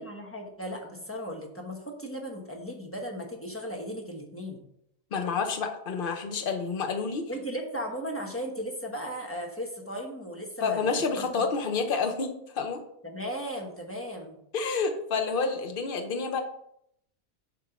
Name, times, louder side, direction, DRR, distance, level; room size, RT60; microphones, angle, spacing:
voice 1, 0.0-4.6 7.3-11.5 13.0-14.4, equal, 10° left, 1 dB, 1.1 m, -36 dB
voice 2, 5.1-7.3 10.6-12.8 14.5-16.4, left 4 dB, 45° left, 5 dB, 1.0 m, -29 dB
7.3 x 3.6 x 5.9 m, 0.73 s
omnidirectional pair, 1.5 m